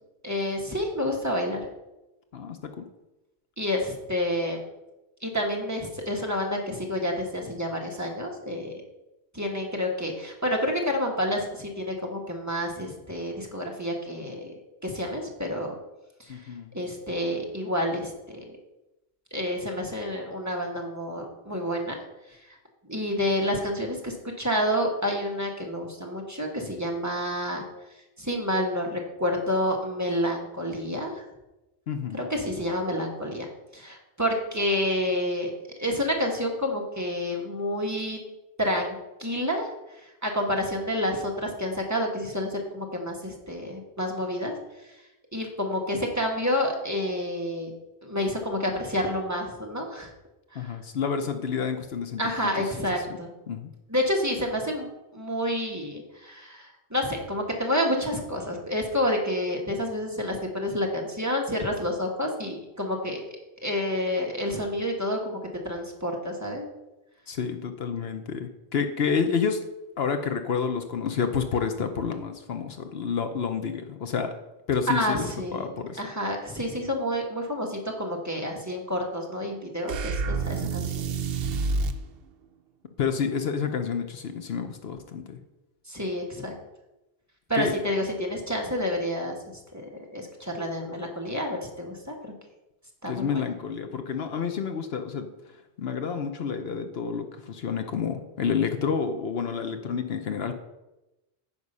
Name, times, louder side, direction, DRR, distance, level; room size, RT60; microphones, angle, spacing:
voice 1, 0.2-1.6 3.6-4.6 5.2-8.7 9.3-14.5 14.8-15.7 16.2-16.4 16.7-18.6 19.3-22.0 22.9-27.6 28.2-31.1 32.1-33.5 33.7-35.5 35.8-38.2 38.6-39.7 40.2-44.5 45.3-47.7 48.0-50.1 50.5-50.7 52.2-53.3 53.9-63.2 63.6-65.4 65.6-66.7 74.9-81.1 85.9-86.5 87.5-89.3 89.7-92.3 93.0-93.4, equal, 15° right, 0 dB, 1.4 m, -29 dB
voice 2, 2.3-2.8 16.3-16.7 31.9-32.2 50.5-52.7 53.5-53.7 67.3-69.6 70.0-74.3 74.7-76.0 80.6-80.7 83.0-85.4 87.5-87.7 93.1-95.3 95.8-100.5, left 6 dB, 65° left, 7 dB, 1.0 m, -29 dB
sound 1, 79.9-82.0, right 4 dB, 65° right, 0.8 m, -28 dB
9.6 x 5.7 x 5.5 m, 0.98 s
omnidirectional pair, 1.1 m